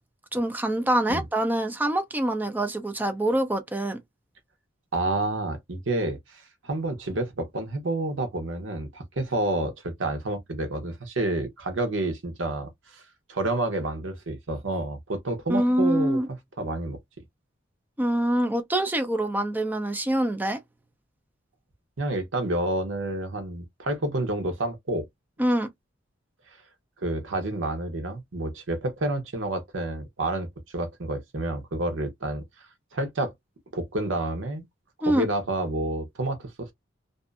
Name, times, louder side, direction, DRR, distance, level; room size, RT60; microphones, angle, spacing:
voice 1, 0.3-4.0 15.5-16.3 18.0-20.6 25.4-25.7 35.0-35.3, right 1 dB, 10° right, 0.5 m, -25 dB
voice 2, 4.9-13.0 13.3-16.2 16.6-17.0 22.0-25.1 27.0-30.5 30.7-32.7 32.9-33.3 33.7-34.7 35.1-36.7, right 2 dB, 75° right, 0.9 m, -29 dB
2.6 x 2.5 x 2.3 m
head